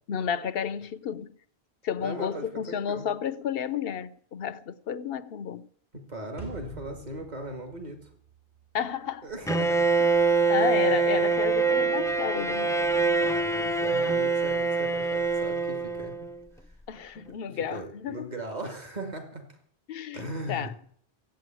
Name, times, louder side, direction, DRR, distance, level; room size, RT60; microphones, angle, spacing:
voice 1, 0.1-1.4 1.8-5.7 8.7-9.3 10.5-12.8 16.9-18.3 19.9-20.2 20.5-20.7, left 8 dB, 70° left, 1.0 m, -31 dB
voice 2, 2.0-3.1 6.1-8.0 9.2-9.9 10.6-11.0 13.2-16.2 17.3-19.4 20.1-20.7, right 1 dB, 45° right, 2.2 m, -38 dB
sound 1, 6.4-8.8, right 1 dB, 60° right, 4.0 m, -44 dB
Bowed string instrument, 9.5-16.4, right 4 dB, 5° left, 0.6 m, -25 dB
15.5 x 8.4 x 9.0 m
omnidirectional pair, 1.0 m